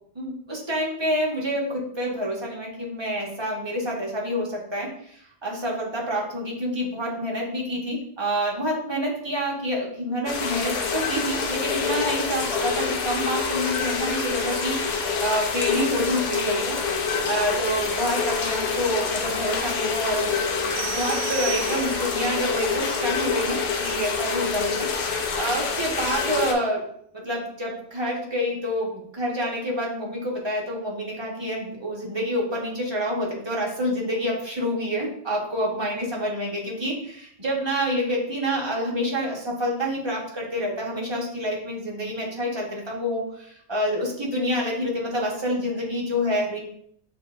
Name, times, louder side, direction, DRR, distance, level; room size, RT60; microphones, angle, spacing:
voice 1, 0.1-16.8 17.2-24.9 25.4-26.9 27.1-46.6, equal, 25° right, -3 dB, 1.0 m, -28 dB
sound 1, 10.3-26.5, left 5 dB, 60° left, 0.7 m, -26 dB
sound 2, 20.8-22.3, right 15 dB, 85° right, 0.9 m, -34 dB
6.6 x 2.9 x 2.5 m, 0.65 s
omnidirectional pair, 1.2 m